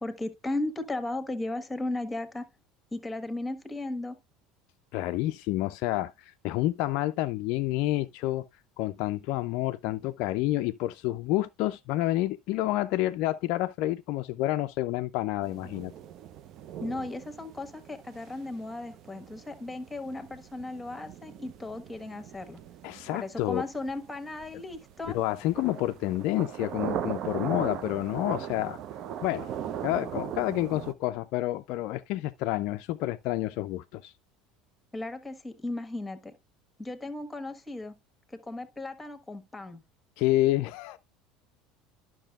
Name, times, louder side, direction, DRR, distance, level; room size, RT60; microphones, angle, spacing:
voice 1, 0.0-2.5 2.9-4.2 16.8-22.6 23.1-25.2 34.9-36.3 36.8-37.9 38.3-39.8, left 2 dB, 10° left, 1.4 m, -36 dB
voice 2, 4.9-8.4 8.8-15.9 22.8-23.6 25.1-28.8 29.2-29.5 29.8-34.1 40.2-41.0, left 16 dB, 60° left, 0.3 m, -29 dB
sound 1, 15.4-30.9, right 9 dB, 50° right, 0.6 m, -39 dB
11.5 x 6.0 x 2.4 m
hypercardioid pair, 70°, 0 cm